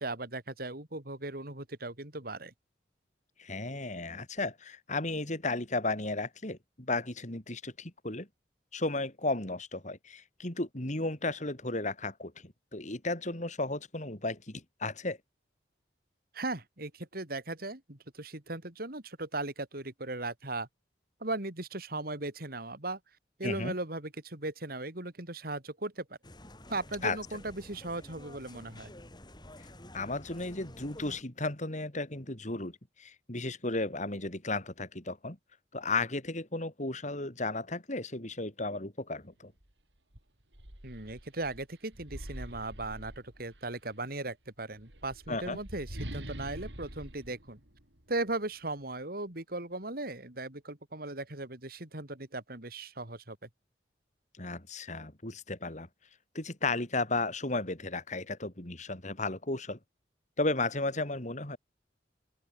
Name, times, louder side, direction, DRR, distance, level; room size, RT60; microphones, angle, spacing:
voice 1, 0.0-2.5 16.3-20.7 21.2-23.0 23.4-26.2 26.7-28.9 40.8-47.6 48.1-53.5, right 2 dB, 60° right, 3.6 m, -38 dB
voice 2, 3.4-8.3 8.7-15.2 23.4-23.7 27.0-27.2 29.9-35.4 35.7-39.5 45.3-45.6 54.4-55.9 56.4-59.8 60.4-61.6, left 2 dB, 45° left, 3.5 m, -34 dB
sound 1, 26.2-31.2, left 1 dB, 25° left, 4.9 m, -50 dB
sound 2, 39.6-39.7 40.1-43.8 44.7-48.3, right 1 dB, 85° right, 5.8 m, -45 dB
open air
head